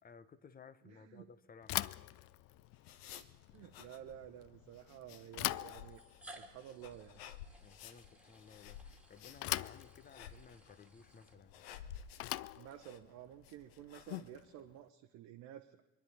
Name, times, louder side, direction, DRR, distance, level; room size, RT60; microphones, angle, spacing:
voice 1, 0.0-1.9 3.6-3.7 7.6-11.6, left 5 dB, 30° left, 1.1 m, -58 dB
voice 2, 0.8-1.3 3.5-6.0 6.3-7.2 12.5-15.8, right 11 dB, 55° right, 1.0 m, -52 dB
Bicycle / Thump thud, 1.6-14.7, left 17 dB, 50° left, 0.4 m, -44 dB
sound 1, 2.2-14.3, left 10 dB, 70° left, 0.9 m, -53 dB
sound 2, 2.4-2.5 3.5-3.6 4.8-4.9 5.8-11.8, right 1 dB, 5° right, 2.6 m, -60 dB
25.5 x 10.0 x 4.3 m
figure-of-eight pair, 55°, 32 cm